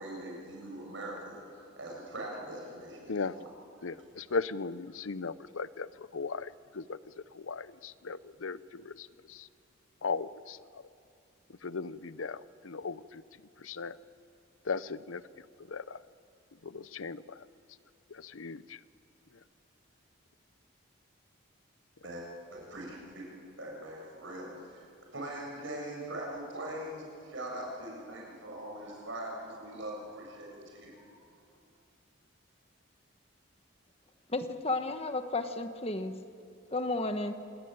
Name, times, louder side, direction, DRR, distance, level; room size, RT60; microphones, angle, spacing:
voice 1, 0.0-3.5 22.0-23.3 23.6-24.8 25.1-31.1, right 1 dB, 65° right, -1 dB, 7.4 m, -42 dB
voice 2, 3.8-9.5 10.0-10.8 11.6-13.2 13.6-14.0 14.6-16.0 16.6-17.5 18.1-18.8 19.3-19.4, left 4 dB, 80° left, 16 dB, 0.7 m, -38 dB
voice 3, 34.3-36.1 36.7-37.3, left 2 dB, 30° left, 8 dB, 1.2 m, -32 dB
27.5 x 19.5 x 9.1 m, 2.4 s
head